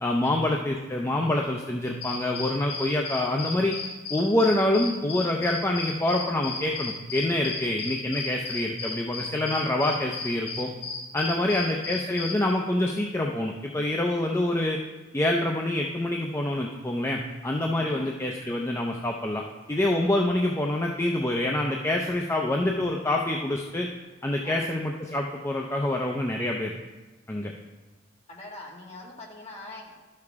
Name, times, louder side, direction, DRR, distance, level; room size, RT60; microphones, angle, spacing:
voice 1, 0.0-3.7 4.1-10.7 11.1-14.8 15.1-19.4 19.7-23.9 24.2-26.7 27.3-27.5, left 1 dB, 15° left, 1 dB, 0.5 m, -26 dB
sound 1, 1.9-12.5, left 4 dB, 55° left, 2.3 m, -35 dB
voice 2, 11.3-11.7 17.9-18.1 24.4-24.7 28.3-30.1, left 2 dB, 35° left, -2 dB, 1.8 m, -44 dB
12.0 x 6.7 x 3.5 m, 1.2 s
head